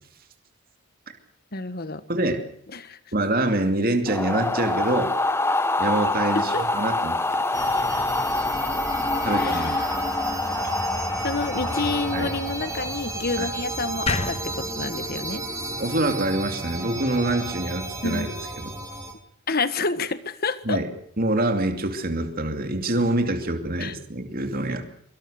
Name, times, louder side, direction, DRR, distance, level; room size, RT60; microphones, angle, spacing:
voice 1, 1.5-2.0 2.7-3.0 6.3-6.6 9.2-10.1 10.6-10.8 11.2-15.4 18.0-18.3 19.5-20.8 23.8-23.9, left 3 dB, 45° left, 13 dB, 1.4 m, -29 dB
voice 2, 2.1-2.4 3.1-5.1 5.8-7.4 9.2-9.8 12.1-12.3 13.4-13.5 15.8-18.7 20.6-20.9 21.2-24.8, right 1 dB, 40° right, 6 dB, 2.7 m, -25 dB
sound 1, 4.1-13.2, left 2 dB, 10° left, 0.9 m, -26 dB
sound 2, 7.5-19.1, right 2 dB, 15° right, 3.1 m, -32 dB
sound 3, 14.1-17.2, left 3 dB, 25° left, 1.2 m, -32 dB
24.0 x 23.5 x 6.6 m, 0.66 s
head